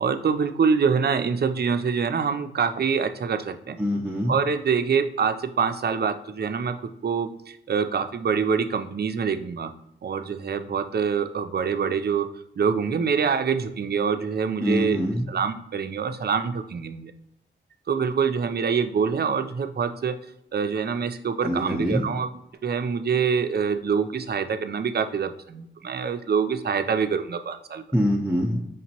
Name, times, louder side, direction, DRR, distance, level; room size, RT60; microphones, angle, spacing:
voice 1, 0.0-3.8 4.3-9.7 10.0-12.3 12.6-15.0 15.3-17.1 17.9-20.2 20.5-22.3 22.6-27.8, right 6 dB, 55° right, 8 dB, 0.5 m, -25 dB
voice 2, 3.8-4.4 14.6-15.3 21.4-22.1 27.9-28.7, equal, ahead, -4 dB, 0.7 m, -24 dB
5.1 x 2.9 x 2.8 m, 0.79 s
wide cardioid pair, 70°, 20 cm